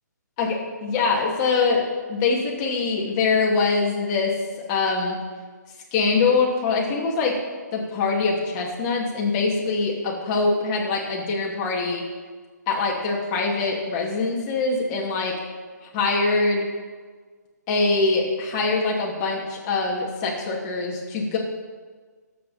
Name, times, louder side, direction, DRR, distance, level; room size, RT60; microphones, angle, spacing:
voice 1, 0.4-4.3 4.7-5.2 5.9-7.3 7.7-12.0 12.7-15.3 15.9-16.7 17.7-21.4, left 4 dB, 20° left, -2 dB, 2.6 m, -23 dB
22.5 x 8.6 x 4.3 m, 1.5 s
hypercardioid pair, 160°, 10 cm